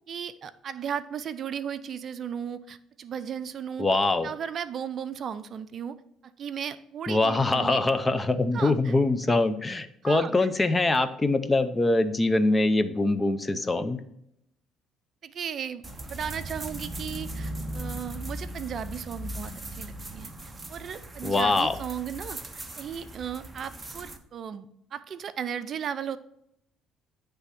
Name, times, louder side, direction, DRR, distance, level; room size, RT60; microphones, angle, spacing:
voice 1, 0.1-3.9 4.2-6.0 6.2-7.8 8.5-8.9 10.0-10.3 15.2-20.3 20.7-22.4 22.8-26.2, right 8 dB, 50° right, 13 dB, 0.5 m, -36 dB
voice 2, 3.8-4.3 7.1-14.0 21.2-21.8, left 2 dB, 20° left, 12 dB, 0.5 m, -24 dB
sound 1, 15.8-24.2, right 1 dB, 15° right, 0.8 m, -38 dB
9.5 x 3.4 x 5.8 m, 0.76 s
cardioid pair, 105°, 0 cm